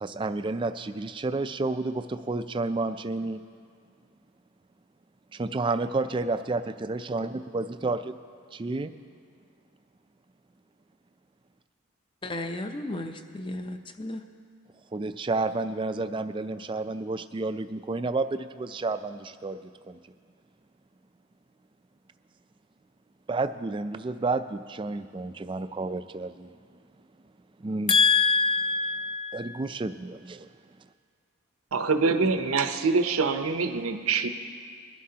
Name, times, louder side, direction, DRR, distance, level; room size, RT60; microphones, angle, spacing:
voice 1, 0.0-3.4 5.3-8.2 8.5-8.9 14.9-19.6 19.9-20.0 23.3-26.5 27.6-27.9 29.3-30.5, right 3 dB, 25° right, 11 dB, 0.3 m, -30 dB
voice 2, 12.2-14.2 27.9-29.4, left 4 dB, 25° left, 7 dB, 0.6 m, -26 dB
voice 3, 31.7-34.3, right 4 dB, 80° right, 8 dB, 0.7 m, -25 dB
21.5 x 11.5 x 2.8 m, 2.1 s
head